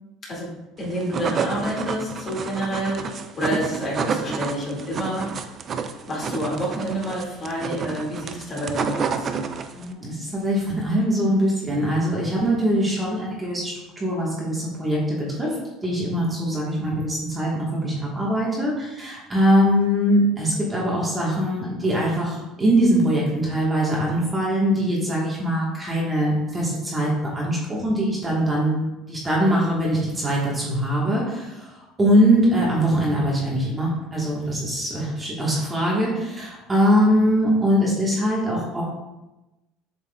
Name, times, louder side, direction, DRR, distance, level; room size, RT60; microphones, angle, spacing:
voice 1, 0.8-5.3 6.1-9.3, equal, 30° left, -4 dB, 2.0 m, -28 dB
sound 1, 0.8-9.9, right 6 dB, 30° right, 0.4 m, -29 dB
voice 2, 9.7-38.8, equal, 15° right, -5 dB, 1.3 m, -22 dB
7.6 x 5.8 x 2.3 m, 1.0 s
cardioid pair, 155°, 0 cm